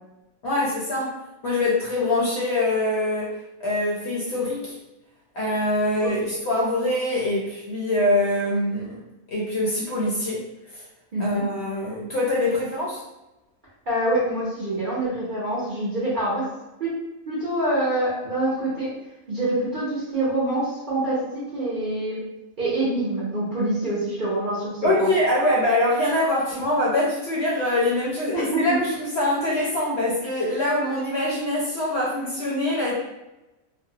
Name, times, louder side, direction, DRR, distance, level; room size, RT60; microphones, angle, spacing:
voice 1, 0.4-1.1 1.4-3.3 3.6-4.7 5.3-9.0 9.3-10.4 10.7-10.8 11.2-13.0 24.8-33.0, left 1 dB, 65° left, -5 dB, 0.7 m, -24 dB
voice 2, 11.1-11.4 13.9-16.5 16.8-17.0 17.3-18.9 19.3-22.2 22.6-25.1 28.3-28.7, right 1 dB, 50° right, -9 dB, 0.7 m, -25 dB
2.6 x 2.1 x 2.7 m, 0.98 s
omnidirectional pair, 1.5 m